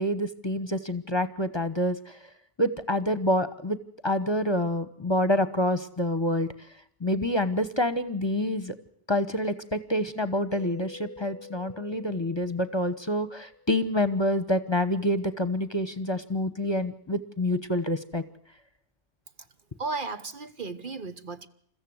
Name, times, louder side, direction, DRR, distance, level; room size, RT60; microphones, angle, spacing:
voice 1, 0.0-2.2 2.6-3.8 4.0-6.5 7.0-8.7 9.1-18.2, left 1 dB, 25° left, 12 dB, 1.1 m, -27 dB
Mallet percussion, 10.5-14.3, left 4 dB, 85° right, 3.8 m, -48 dB
voice 2, 19.8-21.5, right 3 dB, 55° right, 10 dB, 1.2 m, -35 dB
29.0 x 14.5 x 7.9 m, 0.66 s
omnidirectional pair, 1.1 m